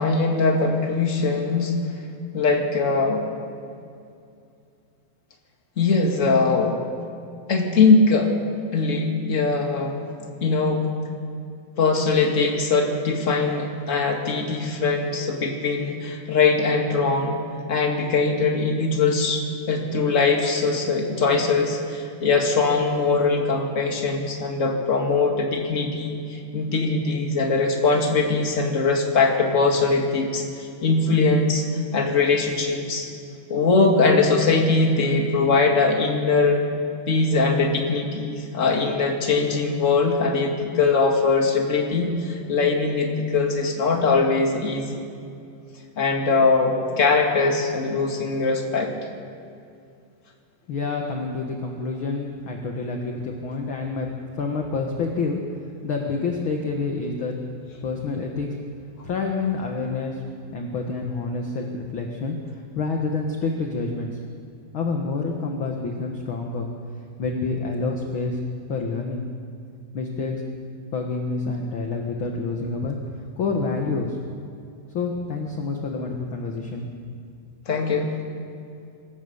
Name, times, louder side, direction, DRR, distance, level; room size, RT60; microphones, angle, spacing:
voice 1, 0.0-1.7 2.3-3.2 5.8-6.8 7.5-8.3 8.7-10.1 10.4-10.9 11.8-17.4 17.7-31.7 31.9-33.1 33.5-36.7 37.1-45.0 46.0-48.9 77.7-78.2, left 4 dB, 25° left, 1 dB, 1.9 m, -21 dB
voice 2, 50.7-54.1 54.4-55.4 55.8-57.4 57.8-58.5 59.0-60.2 60.5-64.2 64.7-66.7 67.2-68.4 68.7-69.2 69.9-70.4 70.9-73.0 73.4-74.2 74.9-76.9, left 4 dB, 55° left, 1 dB, 1.5 m, -28 dB
25.5 x 15.0 x 7.1 m, 2.5 s
omnidirectional pair, 4.3 m